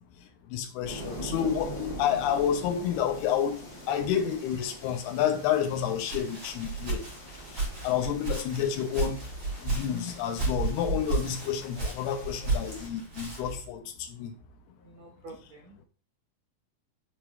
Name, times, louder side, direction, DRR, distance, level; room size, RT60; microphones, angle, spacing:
voice 1, 0.5-3.6 3.9-7.0 7.8-9.2 9.6-13.8 14.2-14.3, left 9 dB, 90° left, 2.9 m, -29 dB
sound 1, 0.8-12.9, right 1 dB, 10° left, 1.2 m, -44 dB
Walk footsteps, 5.7-13.6, right 3 dB, 30° right, 4.2 m, -33 dB
voice 2, 7.7-8.2 14.8-15.8, right 2 dB, 75° right, 1.5 m, -50 dB
7.3 x 4.8 x 3.5 m
omnidirectional pair, 4.5 m